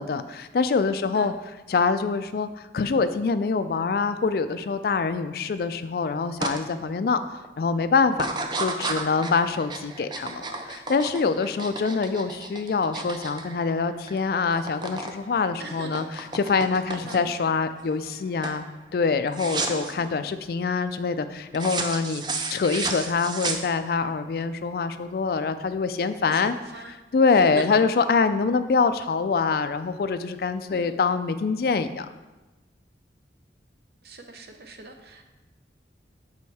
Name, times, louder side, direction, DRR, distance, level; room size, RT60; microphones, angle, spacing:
voice 1, 0.0-1.3 1.7-8.3 8.6-18.7 18.9-22.2 22.5-26.6 26.9-32.1, left 4 dB, 55° left, 11 dB, 0.3 m, -25 dB
voice 2, 0.9-1.3 8.8-9.3 15.6-16.1 16.9-17.3 19.8-20.3 26.2-26.9 27.3-27.8 30.7-30.9 34.0-35.3, right 3 dB, 60° right, 5 dB, 0.7 m, -41 dB
sound 1, 6.4-6.6 7.0-7.5 8.1-14.2 14.4-15.2 15.4-17.4 17.9-18.2 18.4-18.6 19.3-19.9 21.5-24.1, right 3 dB, 25° right, 0.4 m, -32 dB
6.4 x 4.4 x 4.1 m, 1.1 s
head